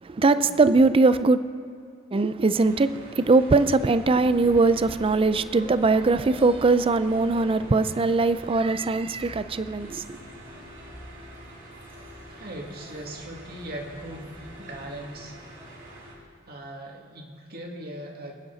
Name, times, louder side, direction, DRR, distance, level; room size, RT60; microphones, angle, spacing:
voice 1, 0.0-1.4 2.1-10.2, right 3 dB, 25° right, 0.4 m, -21 dB
sound 1, 2.5-16.1, equal, 65° right, 4.1 m, -46 dB
sound 2, 4.0-15.6, left 1 dB, 10° right, 2.7 m, -47 dB
voice 2, 12.3-14.3 14.6-15.5 16.2-18.3, right 1 dB, 50° right, 2.3 m, -39 dB
25.5 x 9.2 x 4.0 m
head